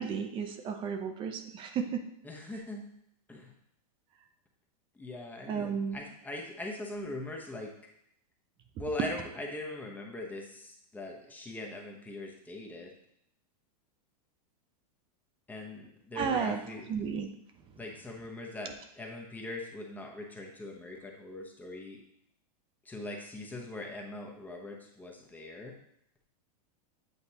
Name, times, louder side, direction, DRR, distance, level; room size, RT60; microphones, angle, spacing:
voice 1, 0.0-2.1 5.5-6.0 16.2-16.6 16.9-17.3, right 6 dB, 25° right, 7 dB, 0.6 m, -33 dB
voice 2, 2.2-2.9 3.3-3.5 4.9-7.7 8.8-12.9 15.5-16.9 17.8-22.0 22.8-25.7, left 2 dB, 10° left, 0 dB, 0.8 m, -41 dB
8.0 x 4.3 x 2.8 m, 0.74 s
supercardioid pair, 140°, 20 cm